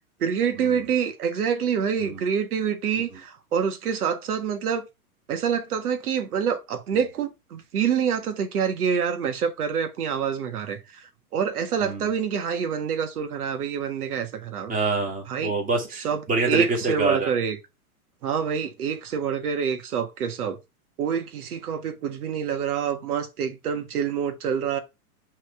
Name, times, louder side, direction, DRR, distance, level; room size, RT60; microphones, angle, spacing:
voice 1, 0.2-4.9 5.3-11.0 11.3-14.7 15.3-15.5 16.0-17.6 18.2-20.6 21.0-24.8, right 7 dB, 75° right, 1.6 m, -26 dB
voice 2, 14.7-17.3, right 3 dB, 15° right, 2.6 m, -26 dB
6.1 x 3.8 x 4.7 m
hypercardioid pair, 125°, 45 cm